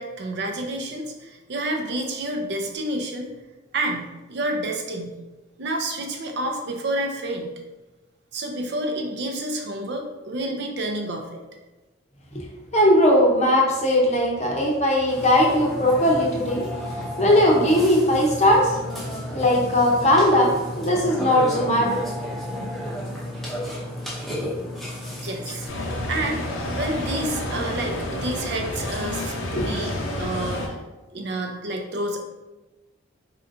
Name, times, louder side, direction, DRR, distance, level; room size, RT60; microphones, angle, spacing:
voice 1, 0.0-3.3 3.7-5.1 5.6-7.5 8.3-11.4 25.2-25.7 26.0-26.4 26.7-30.7 31.1-32.2, right 1 dB, 55° right, 3 dB, 0.6 m, -29 dB
voice 2, 12.7-16.6 17.2-18.8 19.3-22.0 29.6-29.7, left 1 dB, 35° left, -1 dB, 0.7 m, -19 dB
Burping eructation, 15.1-25.7, left 1 dB, ahead, 0.7 m, -32 dB
sound 1, 25.7-30.7, left 1 dB, 75° left, 0.7 m, -29 dB
4.2 x 3.9 x 2.6 m, 1.1 s
head